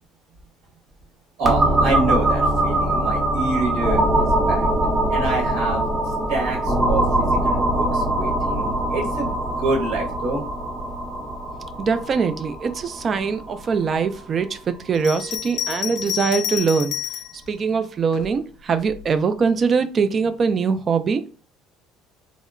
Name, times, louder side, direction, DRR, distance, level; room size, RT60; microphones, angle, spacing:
sound 1, 1.4-15.0, right 1 dB, 15° right, 0.8 m, -22 dB
voice 1, 1.4-4.7 5.1-9.3 9.6-10.4, right 2 dB, 75° right, 1.4 m, -27 dB
voice 2, 11.8-17.0 17.5-21.2, right 5 dB, 40° right, 0.3 m, -22 dB
Bell, 14.9-17.4 18.1-19.0, left 11 dB, 70° left, 0.3 m, -29 dB
2.8 x 2.1 x 2.4 m
cardioid pair, 105°, 0 cm